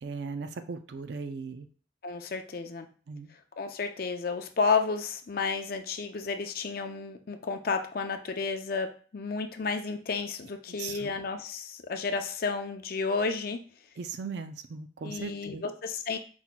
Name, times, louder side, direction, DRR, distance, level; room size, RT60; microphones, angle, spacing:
voice 1, 0.0-1.7 3.1-3.3 10.7-11.1 14.0-15.6, right 5 dB, 60° right, 9 dB, 0.4 m, -38 dB
voice 2, 2.0-2.9 3.6-13.6 15.0-16.2, left 4 dB, 50° left, 6 dB, 0.5 m, -31 dB
4.3 x 4.1 x 2.2 m, 0.40 s
head